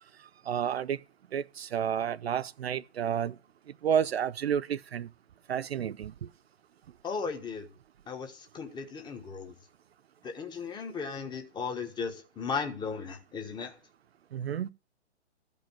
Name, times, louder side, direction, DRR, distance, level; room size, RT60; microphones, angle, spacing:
voice 1, 0.5-1.0 1.3-3.3 3.8-5.1 5.5-6.1 14.3-14.7, right 8 dB, 60° right, 0.5 m, -30 dB
voice 2, 7.0-7.6 8.1-9.5 10.2-13.7, left 5 dB, 10° left, 1.4 m, -36 dB
14.0 x 5.4 x 8.8 m
figure-of-eight pair, 125°, 35 cm